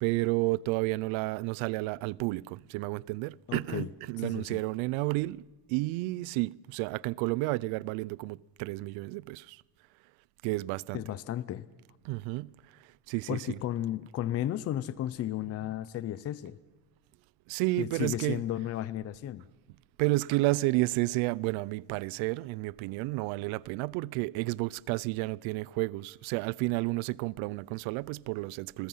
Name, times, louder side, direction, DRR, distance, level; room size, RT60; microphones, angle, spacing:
voice 1, 0.0-5.4 5.7-9.6 10.4-11.1 12.0-12.5 13.1-13.6 15.6-15.7 17.5-18.4 20.0-28.9, right 21 dB, 85° right, 0.7 m, -31 dB
voice 2, 3.5-3.9 4.2-4.6 10.9-11.7 13.3-16.6 17.8-19.4, left 12 dB, 30° left, 0.6 m, -34 dB
29.5 x 21.5 x 5.6 m
cardioid pair, 170°, 46 cm